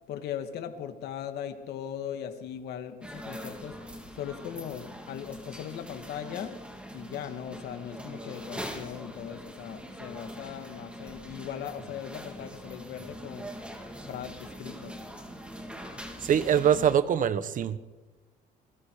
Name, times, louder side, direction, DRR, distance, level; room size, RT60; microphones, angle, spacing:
voice 1, 0.1-3.8 4.1-6.6 6.9-13.5 14.0-15.0, left 9 dB, 75° left, 7 dB, 2.4 m, -39 dB
sound 1, 3.0-17.0, equal, 5° right, 4.1 m, -43 dB
voice 2, 16.2-17.8, right 9 dB, 50° right, 14 dB, 1.2 m, -23 dB
27.5 x 21.5 x 5.0 m, 1.3 s
cardioid pair, 110°, 17 cm